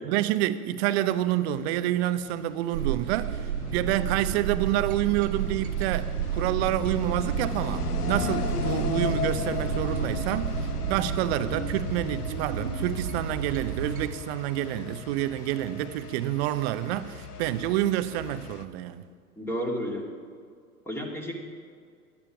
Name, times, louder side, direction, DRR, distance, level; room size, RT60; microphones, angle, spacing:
voice 1, 0.1-19.0, right 13 dB, 45° right, 0.9 m, -28 dB
sound 1, 2.0-18.6, left 6 dB, 85° left, 1.0 m, -37 dB
sound 2, 2.7-14.1, right 7 dB, 70° right, 1.6 m, -31 dB
voice 2, 19.4-20.1 20.9-21.3, equal, 5° left, 2.2 m, -31 dB
15.0 x 11.0 x 5.9 m
figure-of-eight pair, 95°, 45 cm